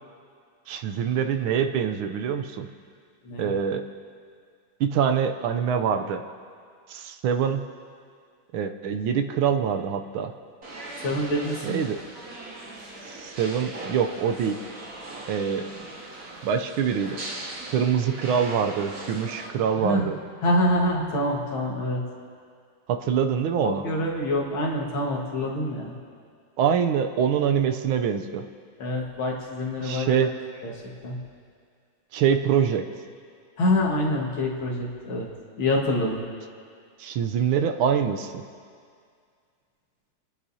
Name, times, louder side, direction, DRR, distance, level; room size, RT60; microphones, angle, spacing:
voice 1, 0.7-2.7 3.4-3.8 4.8-6.2 6.9-7.6 8.5-10.3 11.6-12.0 13.1-14.6 15.3-15.7 16.4-17.2 17.7-20.2 22.9-23.8 26.6-28.4 29.8-30.3 32.1-32.9 37.0-38.4, right 7 dB, 80° right, 7 dB, 1.5 m, -24 dB
sound 1, 10.6-19.5, right 2 dB, 50° right, 2.0 m, -39 dB
voice 2, 11.0-11.8 19.8-20.1 20.4-22.0 23.6-25.9 28.8-30.3 30.6-30.7 31.0-31.2 33.6-35.3 35.6-36.2, left 1 dB, 75° left, -2 dB, 2.4 m, -26 dB
28.5 x 9.9 x 2.8 m, 2.2 s
omnidirectional pair, 2.2 m